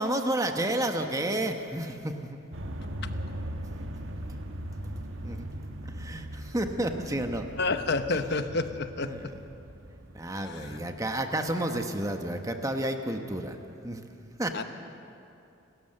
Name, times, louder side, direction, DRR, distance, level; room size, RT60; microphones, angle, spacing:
voice 1, 0.0-2.4 5.2-5.5 5.8-7.5 9.0-9.6 10.1-13.6 13.8-14.0 14.4-14.6, right 1 dB, 15° right, 5 dB, 1.2 m, -31 dB
sound 1, 2.5-11.0, equal, 70° right, 1.3 m, -39 dB
voice 2, 7.6-9.1 10.5-10.8 14.5-14.6, left 3 dB, 55° left, 9 dB, 1.0 m, -29 dB
29.5 x 13.5 x 6.7 m, 2.7 s
head